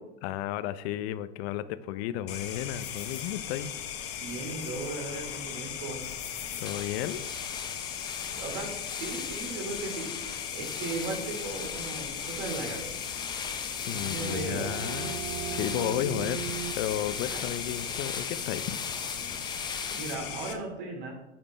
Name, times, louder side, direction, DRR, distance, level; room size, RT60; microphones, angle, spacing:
voice 1, 0.2-3.7 6.6-7.2 13.8-15.2 15.5-18.8, left 12 dB, 60° left, 15 dB, 0.6 m, -33 dB
sound 1, 2.3-20.5, left 8 dB, 40° left, 1.1 m, -38 dB
voice 2, 4.2-6.0 8.1-12.9 13.9-14.7 17.2-17.4 20.0-21.1, right 3 dB, 60° right, 2 dB, 2.6 m, -37 dB
sound 2, 6.6-20.1, left 5 dB, 10° left, 0.5 m, -39 dB
sound 3, 13.6-19.2, right 13 dB, 85° right, 0.5 m, -41 dB
9.0 x 5.2 x 4.1 m, 0.94 s
hypercardioid pair, 100°, 36 cm